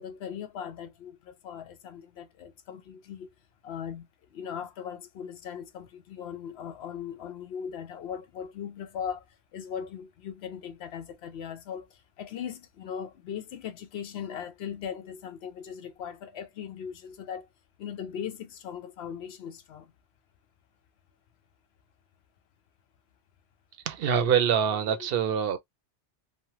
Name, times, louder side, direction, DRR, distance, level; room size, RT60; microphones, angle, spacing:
voice 1, 0.0-3.3 3.6-9.2 9.5-17.5 17.8-19.9 24.7-25.1, left 8 dB, 70° left, 0.8 m, -39 dB
voice 2, 23.9-25.6, right 8 dB, 60° right, 0.7 m, -25 dB
3.1 x 2.0 x 2.8 m
omnidirectional pair, 1.2 m